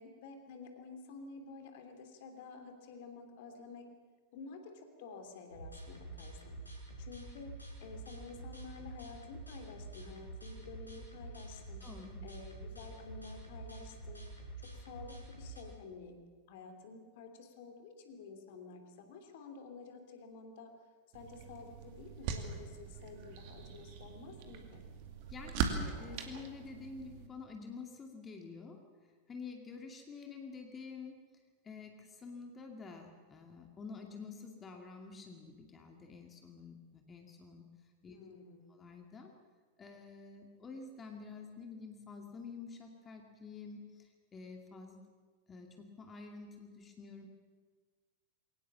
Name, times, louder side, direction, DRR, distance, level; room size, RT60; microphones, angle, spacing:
voice 1, 0.0-3.9 4.3-6.6 7.0-7.5 7.8-11.8 12.2-14.2 14.6-20.7 21.1-24.8 38.1-38.8, left 4 dB, 50° left, 5 dB, 3.0 m, -51 dB
sound 1, 5.5-15.6, right 2 dB, 85° left, 5.4 m, -48 dB
voice 2, 11.8-12.2 25.3-28.8 29.3-31.2 31.6-37.7 38.0-38.2 38.7-39.3 39.8-45.0 45.5-47.3, left 4 dB, 20° left, 2 dB, 2.4 m, -49 dB
sound 2, 21.1-27.3, right 6 dB, 45° right, 2.4 m, -41 dB
22.5 x 18.5 x 7.4 m, 1.5 s
figure-of-eight pair, 90°, 0 cm